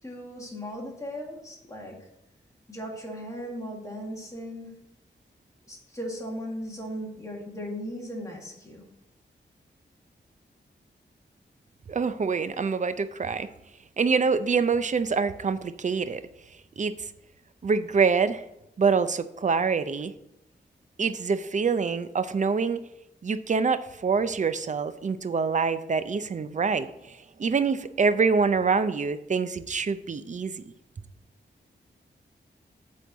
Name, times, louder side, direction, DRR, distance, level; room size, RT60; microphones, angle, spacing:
voice 1, 0.0-2.0 2.7-4.8 5.6-8.9, equal, 15° left, -1 dB, 1.8 m, -37 dB
voice 2, 11.9-13.5 14.0-16.2 16.8-16.9 17.6-18.4 18.8-20.1 21.0-22.8 23.2-30.6, right 5 dB, 40° right, 12 dB, 0.5 m, -25 dB
8.1 x 4.4 x 6.2 m, 0.87 s
wide cardioid pair, 125°, 18 cm